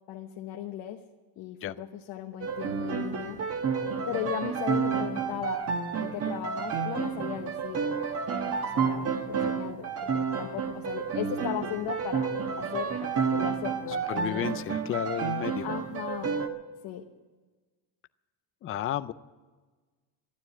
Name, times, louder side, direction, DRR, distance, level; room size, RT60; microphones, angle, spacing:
voice 1, 0.1-1.0 1.4-3.4 4.1-5.6 6.0-7.8 8.4-12.3 12.6-14.5 15.6-16.4 16.8-17.0, left 11 dB, 65° left, 2 dB, 1.1 m, -37 dB
sound 1, 2.4-16.5, right 6 dB, 35° right, 1.2 m, -30 dB
voice 2, 14.1-15.6 18.6-19.1, left 12 dB, 30° left, 15 dB, 0.4 m, -32 dB
12.5 x 9.5 x 10.0 m, 1.3 s
cardioid pair, 140°, 45 cm